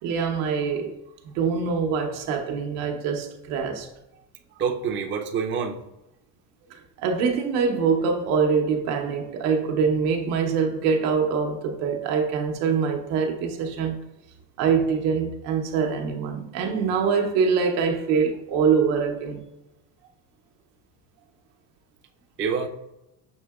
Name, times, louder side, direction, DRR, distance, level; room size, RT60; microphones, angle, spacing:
voice 1, 0.0-0.9 1.2-3.9 6.7-14.0 14.6-19.4, right 6 dB, 85° right, 0.9 m, -24 dB
voice 2, 4.6-5.8 22.4-22.7, right 6 dB, 25° right, 0.5 m, -26 dB
6.4 x 2.8 x 2.3 m
supercardioid pair, 115°, 49 cm